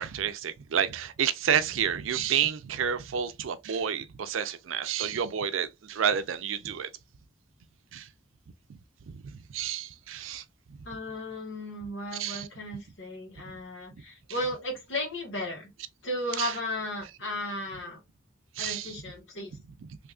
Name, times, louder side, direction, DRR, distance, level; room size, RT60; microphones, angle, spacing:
voice 1, 0.0-6.9 7.9-8.1 8.7-8.8 9.1-10.4 12.1-12.5 16.4-16.6 18.6-19.0, right 8 dB, 85° right, 0.4 m, -30 dB
voice 2, 10.8-15.7 16.0-18.0 18.6-19.6, left 1 dB, 70° left, 1.5 m, -35 dB
3.5 x 2.8 x 2.3 m
head